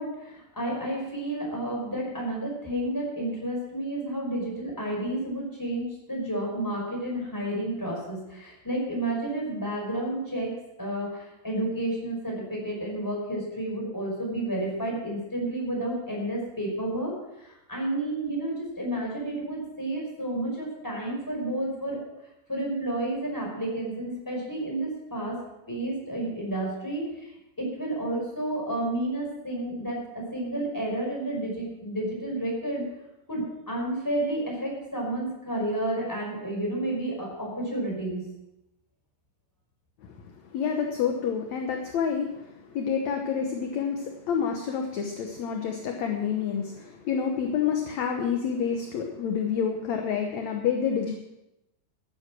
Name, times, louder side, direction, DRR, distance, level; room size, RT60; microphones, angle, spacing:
voice 1, 0.0-10.5 10.8-22.0 22.5-25.4 25.7-32.8 33.3-38.2, right 1 dB, 5° left, -2 dB, 4.8 m, -31 dB
voice 2, 40.5-51.2, left 7 dB, 65° left, 3 dB, 2.1 m, -28 dB
15.0 x 9.8 x 6.1 m, 0.90 s
omnidirectional pair, 4.1 m